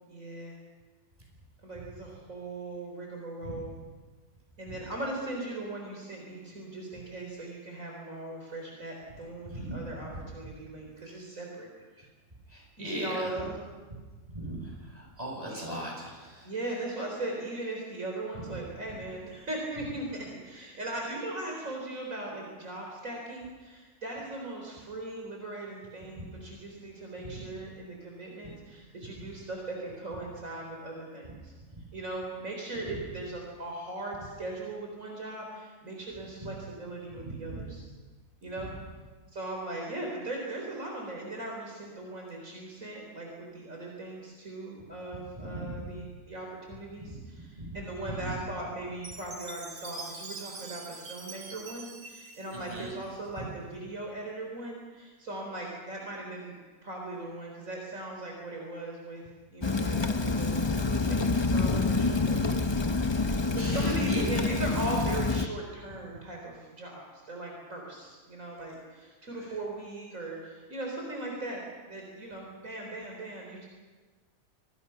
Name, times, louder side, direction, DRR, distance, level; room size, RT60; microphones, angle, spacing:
voice 1, 0.1-0.6 1.6-3.8 4.6-11.7 12.8-13.6 16.4-31.5 31.9-37.9 38.4-38.7 39.3-56.5 56.8-59.2 59.5-60.6 60.9-62.5 63.5-73.7, right 2 dB, 60° right, -1 dB, 4.6 m, -39 dB
voice 2, 12.5-13.3 14.3-16.5 26.2-26.3 27.3-27.4 31.7-31.8 36.4-36.5 37.2-37.6 45.4-45.9 47.0-47.2 47.6-47.7 48.2-48.3 52.7-52.9 63.6-64.2, right 1 dB, 25° right, -2 dB, 8.1 m, -38 dB
Chime, 49.0-53.4, right 3 dB, 80° right, 2.5 m, -44 dB
Rain, 59.6-65.5, left 3 dB, 25° left, 0.7 m, -27 dB
28.0 x 21.0 x 5.9 m, 1.4 s
omnidirectional pair, 1.6 m